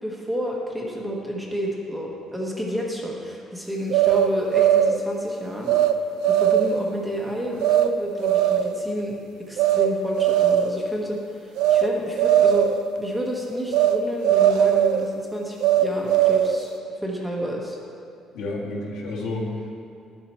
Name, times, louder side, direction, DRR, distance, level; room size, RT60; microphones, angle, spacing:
voice 1, 0.0-5.8 6.2-11.2 11.4-12.7 13.0-16.7 17.0-17.8, equal, 5° right, -2 dB, 1.1 m, -30 dB
sound 1, 3.9-5.0 5.7-5.9 6.2-6.8 7.6-7.9 8.2-8.8 9.6-9.9 10.2-10.8 11.6-11.9 12.2-12.8 13.7-14.0 14.2-15.0 15.6-16.6, right 10 dB, 80° right, 0.4 m, -19 dB
voice 2, 18.3-19.8, left 2 dB, 75° left, -4 dB, 1.9 m, -30 dB
11.0 x 7.0 x 4.4 m, 2.5 s
cardioid pair, 165°, 0 cm